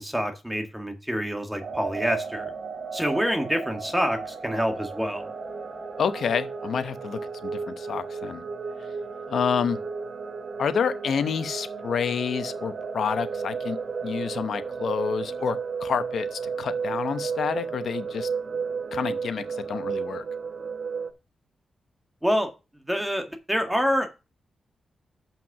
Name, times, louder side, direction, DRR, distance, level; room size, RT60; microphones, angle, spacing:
voice 1, 0.0-2.5 2.9-5.3 22.2-22.5 22.9-24.1, equal, 5° right, 1.8 m, -27 dB
sound 1, 1.6-21.1, right 5 dB, 50° right, 1.3 m, -33 dB
voice 2, 6.0-8.4 9.3-9.8 10.6-18.3 18.9-20.2, left 7 dB, 75° left, 0.9 m, -29 dB
7.4 x 5.8 x 6.0 m
cardioid pair, 85°, 0 cm